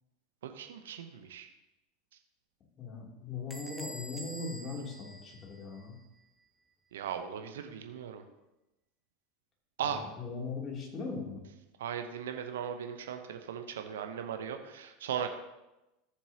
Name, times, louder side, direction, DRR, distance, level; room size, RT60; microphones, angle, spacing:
voice 1, 0.4-1.5 6.9-8.2 9.8-10.1 11.8-15.4, right 8 dB, 70° right, 7 dB, 0.9 m, -38 dB
voice 2, 2.8-5.9 9.8-11.4, left 4 dB, 35° left, -2 dB, 3.1 m, -39 dB
Bell / Door, 3.5-6.0, equal, 5° right, 0.9 m, -47 dB
14.0 x 7.2 x 2.9 m, 0.96 s
figure-of-eight pair, 80°, 0 cm